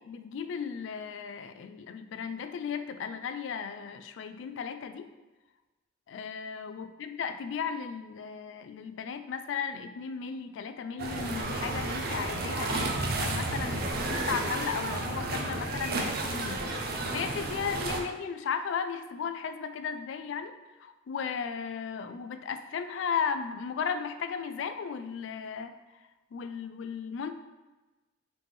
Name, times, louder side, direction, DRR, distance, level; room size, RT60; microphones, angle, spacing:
voice 1, 0.1-5.1 6.1-16.6 17.1-20.5 20.8-25.7 26.3-27.3, left 6 dB, 70° left, 10 dB, 0.3 m, -35 dB
sound 1, 11.0-18.0, right 2 dB, 55° right, 0.6 m, -32 dB
4.0 x 3.5 x 3.2 m, 1.2 s
head